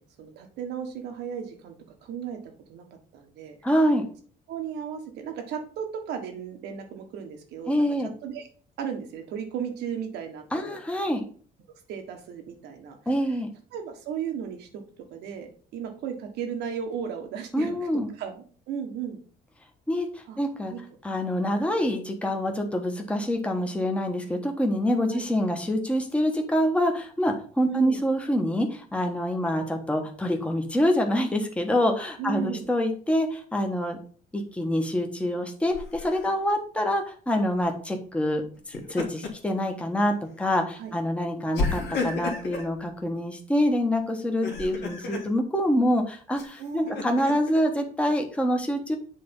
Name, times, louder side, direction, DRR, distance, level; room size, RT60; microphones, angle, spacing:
voice 1, 0.0-1.7 2.0-2.8 3.1-3.6 4.5-8.5 8.8-10.8 11.7-13.1 13.7-14.7 15.0-17.7 18.2-19.2 20.3-20.4 20.7-20.8 25.1-25.2 27.6-28.0 32.2-32.7 40.8-40.9 46.6-47.2, right 8 dB, 85° right, 5 dB, 1.5 m, -35 dB
voice 2, 3.6-4.0 7.7-8.1 10.5-11.2 13.1-13.5 17.5-18.1 19.9-20.7 21.0-34.0 34.3-38.4 38.7-49.0, equal, 5° left, 3 dB, 1.2 m, -26 dB
Laughter, 35.7-36.3 38.6-39.5 39.9-40.1 41.5-42.7 44.3-45.3 46.4-47.6, left 3 dB, 85° left, 1.9 m, -32 dB
7.6 x 3.5 x 5.3 m, 0.43 s
cardioid pair, 110°, 17 cm